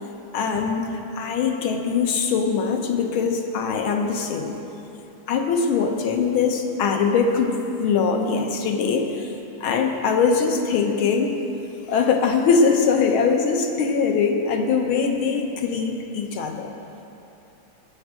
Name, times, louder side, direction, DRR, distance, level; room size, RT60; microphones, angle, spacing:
voice 1, 0.3-4.5 5.3-9.1 9.6-11.3 11.9-16.7, left 5 dB, 85° left, 3 dB, 1.8 m, -22 dB
15.0 x 9.0 x 5.0 m, 2.9 s
omnidirectional pair, 2.2 m